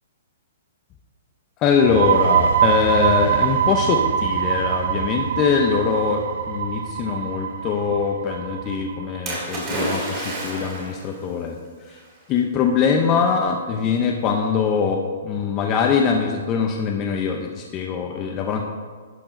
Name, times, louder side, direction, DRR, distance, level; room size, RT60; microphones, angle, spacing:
voice 1, 1.6-6.2 6.5-11.6 11.9-12.0 12.3-18.6, left 6 dB, 20° left, 2 dB, 0.6 m, -22 dB
sound 1, 1.7-9.2, right 8 dB, 50° right, 0.5 m, -23 dB
Splash splatter, 9.3-11.1 12.0-12.1, right 1 dB, 20° right, 2.3 m, -28 dB
11.5 x 4.5 x 5.1 m, 1.5 s
hypercardioid pair, 170°, 0 cm